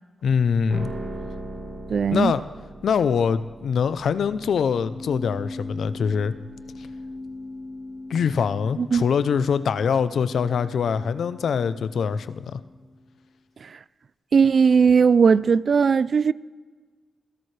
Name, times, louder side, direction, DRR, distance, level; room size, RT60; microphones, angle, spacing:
voice 1, 0.2-0.9 2.1-2.4 2.8-6.3 8.1-12.6, left 6 dB, 80° left, 0.6 m, -23 dB
sound 1, 0.7-13.0, equal, 80° right, 3.5 m, -39 dB
voice 2, 1.9-2.3 8.8-9.0 13.6-13.7 14.3-16.3, right 6 dB, 60° right, 0.4 m, -18 dB
24.5 x 17.0 x 3.3 m
cardioid pair, 65°, 0 cm